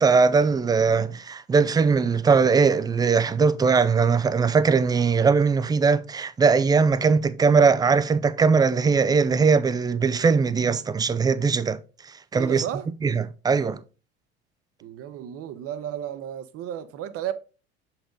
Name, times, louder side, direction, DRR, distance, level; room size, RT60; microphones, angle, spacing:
voice 1, 0.0-11.8 12.3-12.6 13.0-13.8, right 5 dB, 15° right, 0.4 m, -20 dB
voice 2, 12.3-12.9 14.8-17.3, right 10 dB, 45° right, 0.8 m, -33 dB
6.7 x 4.1 x 3.7 m
hypercardioid pair, 70°, 33 cm